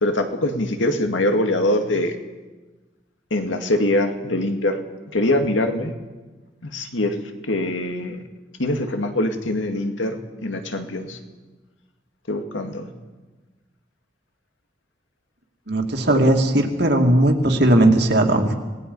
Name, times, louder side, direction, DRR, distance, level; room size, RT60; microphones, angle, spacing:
voice 1, 0.0-2.2 3.3-4.8 5.1-5.9 6.6-7.2 7.5-8.2 8.6-11.2 12.3-12.9 16.1-16.2, left 1 dB, 85° left, 5 dB, 2.1 m, -23 dB
voice 2, 15.7-18.5, right 1 dB, 60° right, 2 dB, 2.4 m, -17 dB
26.0 x 19.5 x 5.5 m, 1.2 s
head